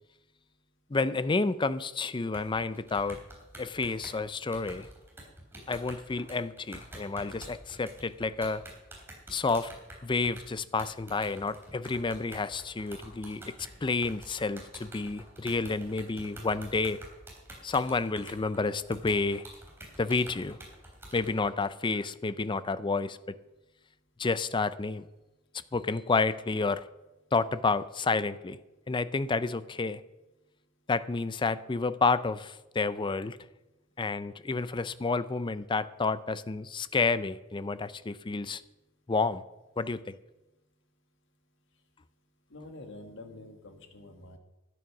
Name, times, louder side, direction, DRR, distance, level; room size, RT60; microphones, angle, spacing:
voice 1, 0.9-3.2 3.6-4.9 5.7-8.6 9.3-9.7 10.0-13.4 13.8-17.0 17.6-19.4 20.0-20.6 21.1-23.2 24.2-25.1 25.7-26.8 27.3-28.6 28.9-30.0 30.9-33.4 34.0-38.6 39.1-39.4 39.8-40.2, left 3 dB, 25° left, 15 dB, 0.5 m, -30 dB
sound 1, 2.3-21.3, right 1 dB, 10° right, 3.5 m, -48 dB
voice 2, 42.5-44.4, left 2 dB, 60° left, 5 dB, 1.9 m, -47 dB
13.0 x 9.3 x 6.0 m, 1.0 s
head